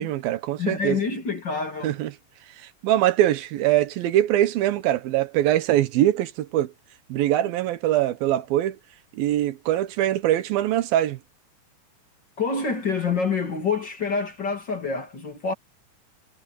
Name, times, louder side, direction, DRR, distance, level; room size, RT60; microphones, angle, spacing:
voice 1, 0.0-1.0 1.8-2.1 2.8-6.7 7.1-8.8 9.1-11.2, right 13 dB, 85° right, 3.0 m, -22 dB
voice 2, 0.6-1.9 12.4-15.5, left 5 dB, 35° left, 2.8 m, -27 dB
omnidirectional pair, 4.1 m